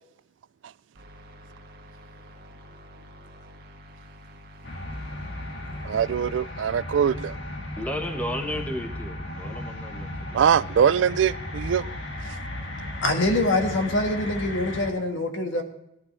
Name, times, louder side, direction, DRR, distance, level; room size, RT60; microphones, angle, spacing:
sound 1, 1.0-6.2, equal, 55° right, 1.7 m, -48 dB
sound 2, 4.6-14.9, left 1 dB, 65° left, 2.1 m, -35 dB
voice 1, 5.8-7.4 10.3-11.8, right 8 dB, 75° right, 0.3 m, -22 dB
voice 2, 7.8-10.5, left 1 dB, 10° left, 1.0 m, -33 dB
voice 3, 13.0-15.6, left 2 dB, 85° left, 1.6 m, -24 dB
18.0 x 11.5 x 3.2 m
head